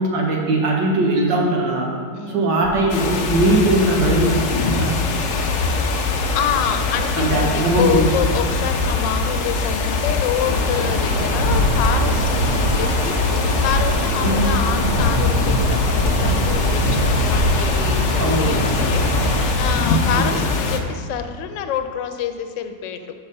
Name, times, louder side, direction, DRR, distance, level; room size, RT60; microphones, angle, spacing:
voice 1, 0.0-1.9 2.3-4.9 7.2-8.1 14.2-14.6 18.2-18.6 20.1-20.5, right 2 dB, 80° right, -1 dB, 1.9 m, -20 dB
voice 2, 2.1-2.5 6.3-23.1, left 8 dB, 90° left, 8 dB, 1.3 m, -27 dB
sound 1, 2.9-20.8, left 3 dB, 60° left, 0.9 m, -22 dB
sound 2, 10.3-19.9, equal, 5° right, 1.0 m, -30 dB
sound 3, 10.4-19.5, equal, 50° right, 0.9 m, -24 dB
7.0 x 5.6 x 5.4 m, 2.1 s
omnidirectional pair, 1.9 m